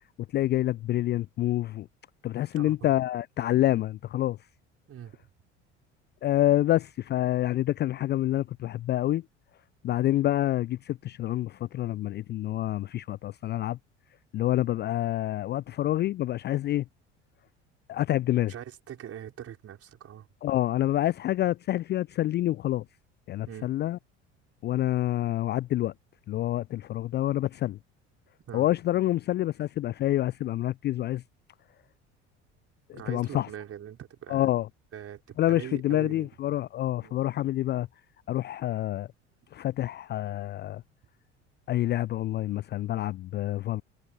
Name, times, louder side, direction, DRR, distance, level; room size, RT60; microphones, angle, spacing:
voice 1, 0.3-1.9 2.2-4.4 6.2-9.2 9.8-13.8 14.3-16.8 17.9-18.5 20.4-22.8 23.3-24.0 24.6-25.9 26.3-27.8 28.5-31.2 33.1-33.5 34.3-34.7 35.4-37.9 38.3-39.1 39.5-40.8 41.7-43.8, left 14 dB, 30° left, 0.4 m, -27 dB
voice 2, 2.5-2.9 4.9-5.3 18.5-20.3 23.5-23.7 28.5-28.7 32.9-34.5 34.9-36.3 37.0-37.2, right 10 dB, 40° right, 5.1 m, -42 dB
figure-of-eight pair, 65°, 34 cm